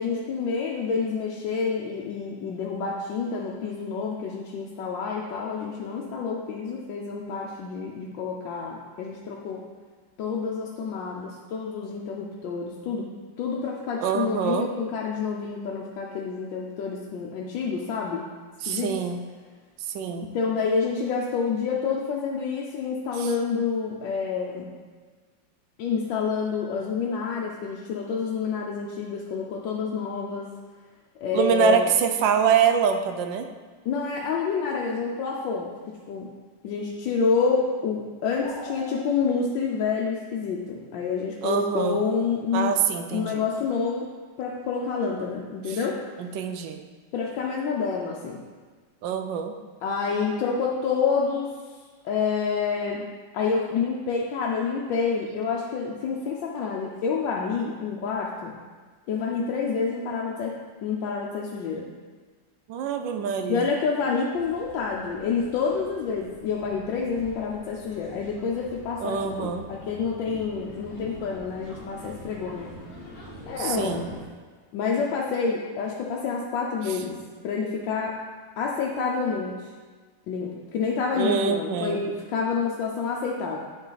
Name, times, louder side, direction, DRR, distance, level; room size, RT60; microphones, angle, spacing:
voice 1, 0.0-9.6 10.2-13.1 13.4-18.2 18.7-18.9 20.2-24.7 25.8-30.5 31.2-31.9 33.8-35.7 36.1-36.3 36.6-42.8 43.1-44.0 44.4-46.0 47.1-48.4 49.8-51.5 52.0-53.1 53.3-58.5 59.1-60.5 60.8-61.9 63.5-72.7 73.5-74.1 74.7-77.2 77.4-78.1 78.6-79.7 80.3-83.6, left 5 dB, 80° left, -3 dB, 1.4 m, -28 dB
voice 2, 14.0-14.7 18.6-19.2 19.9-20.3 23.2-23.3 31.3-33.5 41.4-42.0 42.5-43.4 45.7-45.8 46.2-46.8 49.0-49.5 62.7-63.7 69.0-69.7 73.6-74.1 76.9-77.0 81.1-82.0, right 7 dB, 80° right, 6 dB, 1.3 m, -25 dB
sound 1, 38.4-39.0, equal, 5° left, 0.7 m, -38 dB
sound 2, 64.3-74.3, left 1 dB, 30° left, 1.0 m, -45 dB
9.7 x 4.2 x 3.9 m, 1.5 s
omnidirectional pair, 2.0 m